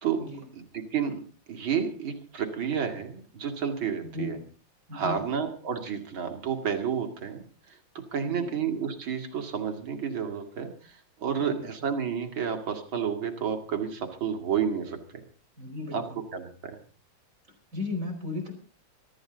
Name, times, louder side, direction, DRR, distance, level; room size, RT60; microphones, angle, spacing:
voice 1, 0.5-1.2 1.5-4.4 4.9-15.2 15.9-16.0 16.3-16.8, right 7 dB, 85° right, 5 dB, 3.1 m, -31 dB
voice 2, 4.1-4.5 4.9-5.2 8.2-8.5 11.4-11.7 15.6-16.2 17.7-18.5, left 2 dB, 40° right, 3 dB, 5.2 m, -35 dB
23.0 x 13.5 x 3.9 m, 0.37 s
omnidirectional pair, 2.1 m